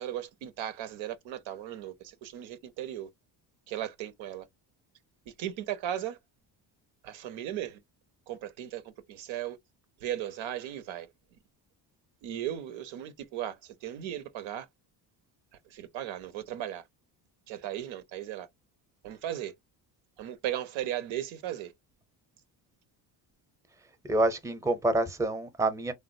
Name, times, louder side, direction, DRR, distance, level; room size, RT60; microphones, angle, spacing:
voice 1, 0.0-3.1 3.7-4.5 5.3-6.2 7.0-7.8 8.3-9.6 10.0-11.1 12.2-14.7 15.7-16.9 17.5-18.5 19.0-19.5 20.2-21.7, right 11 dB, 85° right, 0.7 m, -36 dB
voice 2, 24.0-25.9, right 2 dB, 5° right, 0.6 m, -27 dB
3.5 x 2.0 x 2.5 m
cardioid pair, 110°, 45 cm